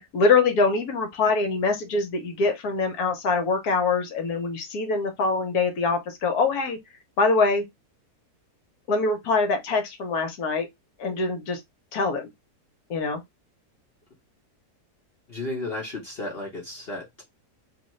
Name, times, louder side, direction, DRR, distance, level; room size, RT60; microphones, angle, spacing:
voice 1, 0.1-6.8 7.2-7.6 8.9-10.7 11.0-11.6 11.9-12.3 12.9-13.2, left 4 dB, 65° left, 1.3 m, -24 dB
voice 2, 15.3-17.2, left 2 dB, 45° left, 1.0 m, -33 dB
3.3 x 2.7 x 3.1 m
omnidirectional pair, 1.8 m